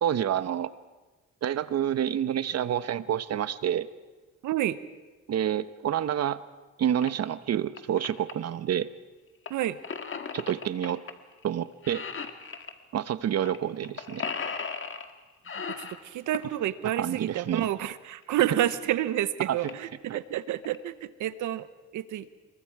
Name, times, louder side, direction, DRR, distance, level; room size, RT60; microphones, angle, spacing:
voice 1, 0.0-0.7 1.4-3.9 5.3-6.4 6.8-8.9 10.3-11.0 11.4-12.0 12.9-14.2 17.0-17.7 19.5-19.6 20.1-20.2, right 10 dB, 55° right, 14 dB, 1.0 m, -28 dB
voice 2, 4.4-4.8 9.5-9.8 15.8-21.7 21.9-22.3, right 12 dB, 80° right, 14 dB, 1.1 m, -29 dB
sound 1, 7.0-7.1 7.5-8.3 9.5-11.1 11.4-11.6 11.8-12.7 13.5-13.6 13.8-15.1 15.4-16.6 18.2-18.3 18.9-19.0 19.2-19.3 19.6-19.9 20.4-20.8, left 5 dB, 45° left, 1.8 m, -36 dB
27.0 x 22.5 x 4.8 m, 1.2 s
cardioid pair, 90°, 30 cm